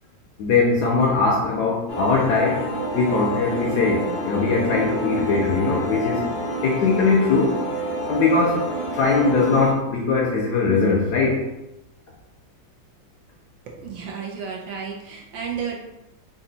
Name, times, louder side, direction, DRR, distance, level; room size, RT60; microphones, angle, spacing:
voice 1, 0.4-6.3 6.6-7.7 8.1-8.7 8.9-11.5, left 4 dB, 75° left, -1 dB, 1.0 m, -21 dB
sound 1, 1.9-9.7, equal, 55° left, 0.5 m, -28 dB
voice 2, 13.7-15.9, right 6 dB, 75° right, -1 dB, 1.4 m, -32 dB
4.1 x 2.4 x 3.9 m, 0.92 s
omnidirectional pair, 2.2 m